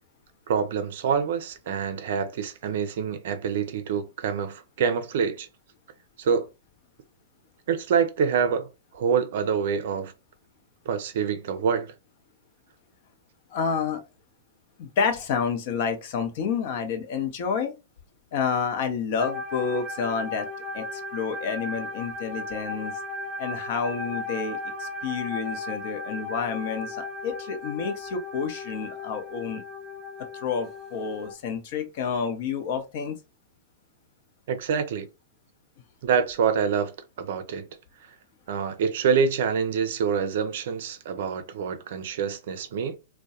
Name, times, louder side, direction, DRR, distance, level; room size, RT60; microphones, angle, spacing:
voice 1, 0.5-5.5 6.2-6.5 7.7-10.1 10.9-11.9 34.5-35.1 36.0-36.9 37.2-37.7 38.5-43.0, right 6 dB, 60° right, 0.5 m, -26 dB
voice 2, 13.5-14.0 14.8-17.7 18.3-20.5 20.7-22.9 23.4-29.6 30.4-33.2, left 6 dB, 55° left, 0.6 m, -29 dB
sound 1, 19.2-31.3, left 2 dB, 15° right, 0.8 m, -36 dB
2.2 x 2.1 x 2.7 m
hypercardioid pair, 115°, 0 cm